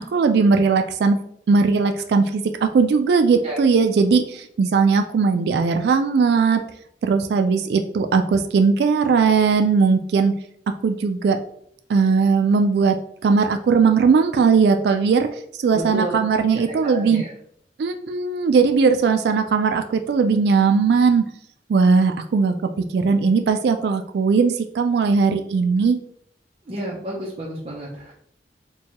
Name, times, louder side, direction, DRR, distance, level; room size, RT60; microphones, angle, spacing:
voice 1, 0.1-1.2 1.5-6.6 7.0-10.4 10.8-11.4 11.9-13.0 13.2-15.3 15.6-17.2 17.8-21.3 21.7-26.0, right 5 dB, 65° right, 7 dB, 0.3 m, -18 dB
voice 2, 15.7-16.1 16.7-17.3 26.7-28.1, right 1 dB, 35° right, -4 dB, 0.7 m, -30 dB
4.5 x 2.2 x 2.9 m, 0.67 s
head